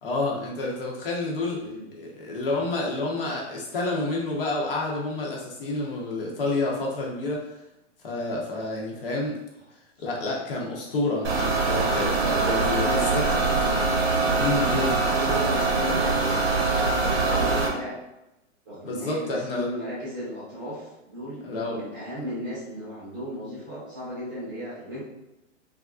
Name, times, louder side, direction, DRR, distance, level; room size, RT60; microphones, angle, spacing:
voice 1, 0.0-1.6 2.0-7.4 8.0-9.4 10.0-13.2 14.4-14.9 18.8-19.7 21.4-21.8, left 2 dB, 50° left, -2 dB, 0.7 m, -29 dB
voice 2, 1.6-2.1 10.0-10.2 12.6-13.1 14.4-18.0 18.6-25.0, equal, 10° right, -11 dB, 0.7 m, -36 dB
sound 1, 11.2-17.7, right 3 dB, 55° right, 0.8 m, -23 dB
3.4 x 2.3 x 2.4 m, 0.92 s
hypercardioid pair, 175°, 37 cm